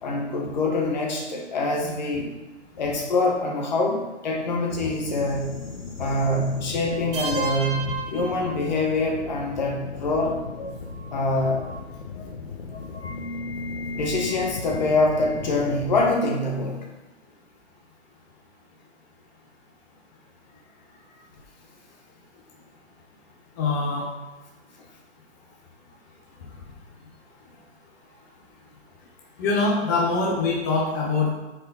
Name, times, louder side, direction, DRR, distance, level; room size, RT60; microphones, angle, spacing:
voice 1, 0.0-2.3 2.8-5.6 6.0-10.4 11.1-11.6 14.0-16.9, left 2 dB, 40° left, 1 dB, 1.3 m, -25 dB
sound 1, 4.7-16.1, left 3 dB, 60° left, 1.3 m, -36 dB
sound 2, 7.1-9.1, right 4 dB, 50° right, 0.9 m, -32 dB
voice 2, 23.6-24.1 29.4-31.3, left 3 dB, 15° left, -3 dB, 0.9 m, -23 dB
9.2 x 4.8 x 4.0 m, 1.1 s
hypercardioid pair, 170°, 35 cm